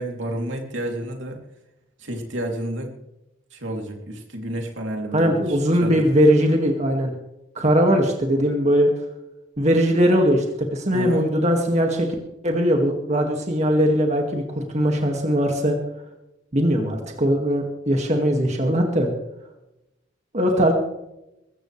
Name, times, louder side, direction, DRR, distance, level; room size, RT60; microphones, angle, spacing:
voice 1, 0.0-1.4 2.0-2.9 3.5-6.1 10.9-11.2, right 1 dB, 70° right, 2 dB, 3.1 m, -30 dB
voice 2, 5.1-7.1 7.6-8.9 9.6-12.1 12.4-15.8 16.5-19.1 20.3-20.7, equal, 35° right, 2 dB, 2.1 m, -20 dB
23.0 x 14.0 x 3.4 m, 0.90 s
head